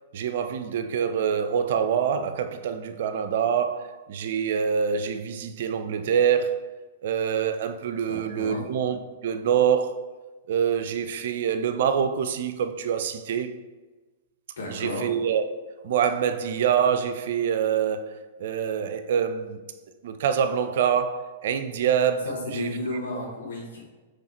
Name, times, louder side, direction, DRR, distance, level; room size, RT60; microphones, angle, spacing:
voice 1, 0.1-6.6 7.0-10.0 10.5-13.6 14.7-15.4 15.8-19.6 20.0-22.7, right 8 dB, 60° right, 0.3 m, -25 dB
voice 2, 8.1-8.6 14.6-15.1 22.2-23.8, left 1 dB, 70° left, 1.4 m, -33 dB
3.9 x 3.1 x 4.2 m
hypercardioid pair, 110°, 0 cm